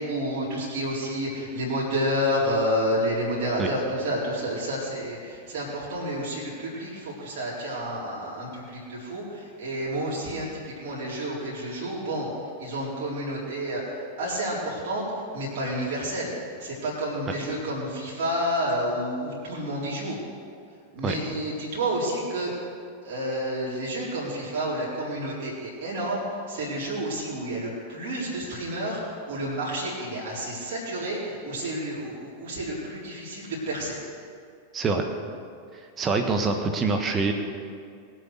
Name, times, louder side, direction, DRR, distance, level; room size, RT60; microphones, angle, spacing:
voice 1, 0.0-10.5 10.8-12.3 12.6-13.8 14.2-15.0 15.3-20.2 20.9-22.5 23.0-29.0 29.3-33.9, equal, 50° right, -7 dB, 4.4 m, -30 dB
voice 2, 34.7-35.0 35.7-37.3, right 4 dB, 25° right, 5 dB, 1.4 m, -25 dB
22.0 x 7.7 x 6.5 m, 2.3 s
figure-of-eight pair, 90°, 0 cm